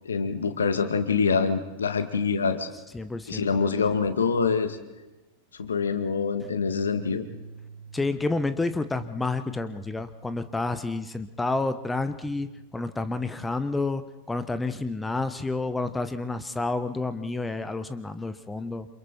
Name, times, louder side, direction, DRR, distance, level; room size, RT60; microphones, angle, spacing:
voice 1, 0.0-2.7 3.3-4.8 5.5-7.3, left 5 dB, 70° left, 8 dB, 2.1 m, -25 dB
voice 2, 2.9-3.5 7.9-14.0 14.3-18.9, left 3 dB, 10° left, 11 dB, 1.2 m, -29 dB
sound 1, 6.4-12.7, right 6 dB, 50° right, 6.8 m, -47 dB
29.0 x 27.5 x 4.5 m, 1.1 s
figure-of-eight pair, 90°, 0 cm